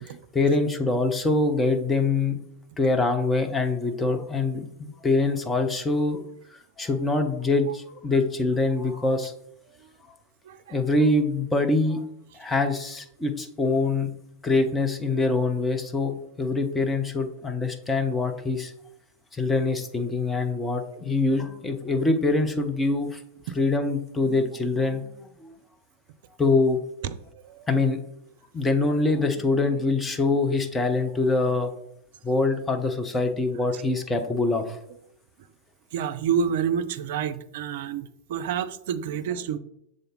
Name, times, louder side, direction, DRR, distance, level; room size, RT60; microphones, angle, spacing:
voice 1, 0.3-2.4 2.8-6.2 6.5-9.3 10.7-12.0 12.3-14.1 14.4-16.1 16.4-18.7 19.3-23.2 23.5-25.5 26.4-26.8 27.7-28.0 28.5-31.7 32.2-34.8, left 3 dB, 15° left, 5 dB, 0.8 m, -24 dB
voice 2, 10.4-10.8 12.5-12.6 23.5-23.6 27.0-27.7 33.7-33.8 34.9-35.0 35.9-39.6, right 7 dB, 55° right, 11 dB, 0.5 m, -29 dB
6.8 x 3.8 x 3.8 m, 0.73 s
figure-of-eight pair, 90°, 0 cm